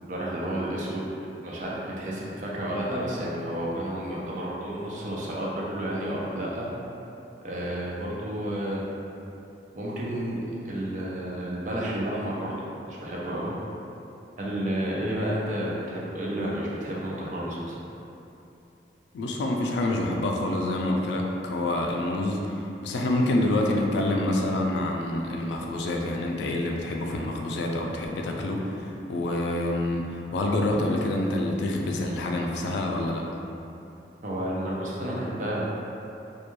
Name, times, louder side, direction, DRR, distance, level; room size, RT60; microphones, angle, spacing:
voice 1, 0.0-1.1 1.4-6.7 7.4-8.8 9.7-10.4 10.6-13.5 14.4-17.8 34.2-35.7, right 1 dB, 45° right, -5 dB, 0.4 m, -31 dB
voice 2, 19.1-33.2, left 1 dB, 75° left, 0 dB, 0.3 m, -27 dB
2.2 x 2.2 x 2.9 m, 2.8 s
head